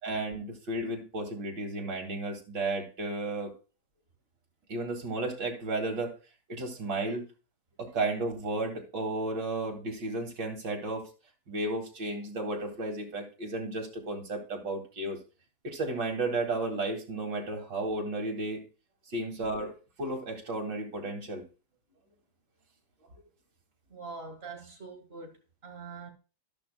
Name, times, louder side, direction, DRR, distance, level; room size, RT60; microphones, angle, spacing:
voice 1, 0.0-3.5 4.7-6.1 6.5-7.3 7.8-11.1 11.5-15.2 15.6-18.6 19.1-21.4, right 2 dB, 75° right, 3.1 m, -33 dB
voice 2, 23.9-25.4 25.6-26.1, right 4 dB, 35° right, 2.2 m, -43 dB
12.5 x 12.0 x 2.3 m
omnidirectional pair, 1.9 m